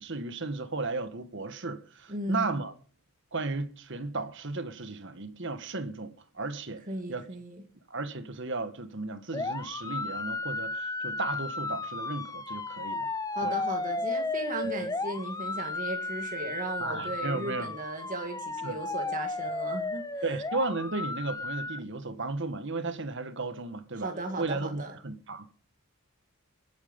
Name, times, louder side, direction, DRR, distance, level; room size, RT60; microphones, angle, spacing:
voice 1, 0.0-2.7 3.3-6.8 7.1-7.3 7.9-13.1 13.4-13.6 16.8-17.7 18.6-18.8 20.2-24.1 24.4-25.5, right 3 dB, 55° right, 1.5 m, -34 dB
voice 2, 2.1-2.6 6.9-7.6 13.3-20.2 24.0-24.9, right 2 dB, 35° right, 2.0 m, -36 dB
sound 1, 9.3-21.8, left 3 dB, 15° left, 0.7 m, -34 dB
22.0 x 9.4 x 5.2 m
head